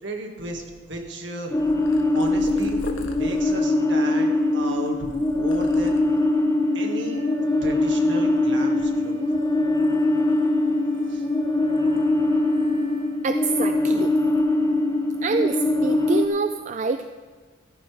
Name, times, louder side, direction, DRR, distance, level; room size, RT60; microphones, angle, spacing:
voice 1, 0.0-1.5 2.1-6.0 6.7-7.2 7.6-9.4 11.1-11.2, right 1 dB, 60° right, 2 dB, 1.9 m, -34 dB
sound 1, 1.5-16.3, left 2 dB, 15° left, 0.8 m, -22 dB
Purr, 1.6-6.4 7.0-7.5 7.7-8.9 9.3-11.4 11.7-13.0 13.2-13.6 14.2-14.5, left 2 dB, 75° left, 1.4 m, -43 dB
Wind instrument woodwind instrument, 6.6-13.2, right 2 dB, 80° right, 3.4 m, -46 dB
voice 2, 13.2-14.1 15.2-17.1, right 4 dB, 35° right, 8 dB, 0.4 m, -26 dB
15.0 x 14.0 x 3.4 m, 1.4 s
head